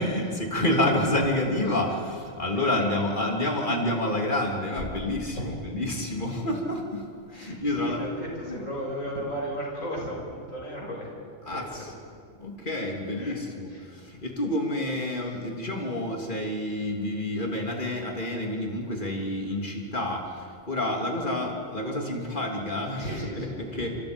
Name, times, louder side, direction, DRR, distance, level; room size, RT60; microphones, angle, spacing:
voice 1, 0.0-8.1 8.5-8.6 11.4-11.9 12.4-24.0, left 1 dB, 40° left, 1 dB, 3.2 m, -29 dB
voice 2, 5.3-5.8 7.3-11.1 11.5-11.6 11.9-12.0 13.2-13.3 13.7-13.9 23.0-23.8, equal, 85° left, -2 dB, 6.7 m, -35 dB
26.5 x 26.5 x 5.3 m, 2.3 s
omnidirectional pair, 1.3 m